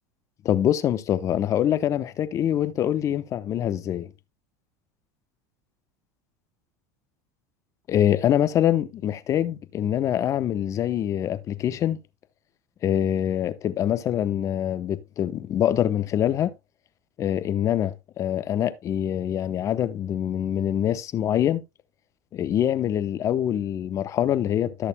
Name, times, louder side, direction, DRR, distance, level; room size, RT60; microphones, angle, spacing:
voice 1, 0.4-4.1 7.9-12.0 12.8-16.5 17.2-21.6 22.3-24.9, left 10 dB, 40° left, 0.8 m, -24 dB
13.5 x 6.6 x 2.2 m
hypercardioid pair, 100°, 8 cm